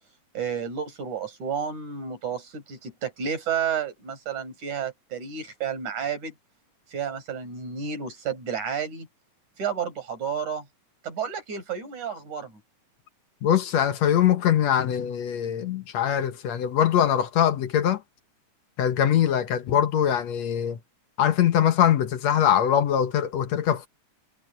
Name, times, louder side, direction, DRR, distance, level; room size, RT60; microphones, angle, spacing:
voice 1, 0.3-6.3 6.9-9.1 9.6-10.7 11.0-12.5, right 7 dB, 80° right, 7.1 m, -31 dB
voice 2, 13.4-18.0 18.8-20.8 21.2-23.9, left 9 dB, 65° left, 2.2 m, -22 dB
omnidirectional pair, 3.4 m